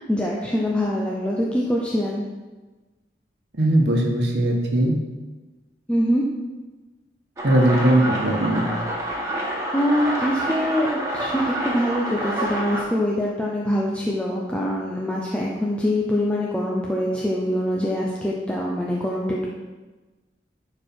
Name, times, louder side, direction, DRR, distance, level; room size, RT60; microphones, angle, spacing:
voice 1, 0.1-2.2 5.9-6.2 9.7-10.9 11.1-19.5, equal, 5° left, -4 dB, 0.7 m, -24 dB
voice 2, 3.6-4.9 7.4-8.6, right 1 dB, 75° right, 0 dB, 1.4 m, -19 dB
sound 1, 7.4-12.8, right 1 dB, 20° right, 1.7 m, -28 dB
11.0 x 4.7 x 4.5 m, 1.2 s
head